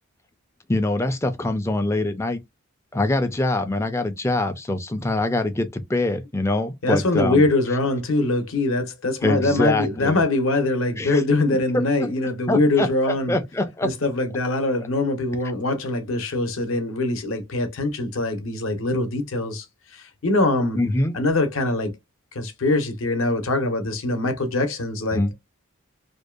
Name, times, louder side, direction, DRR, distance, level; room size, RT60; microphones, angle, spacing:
voice 1, 0.7-2.4 2.9-7.5 9.2-10.2 10.9-11.2 11.7-12.1 12.5-13.9 20.8-21.2 25.1-25.3, left 2 dB, 10° left, 0.3 m, -24 dB
voice 2, 6.8-13.4 13.8-19.6 19.9-20.8 21.1-21.9 22.3-25.3, left 2 dB, 65° left, 0.7 m, -23 dB
2.6 x 2.2 x 2.3 m
head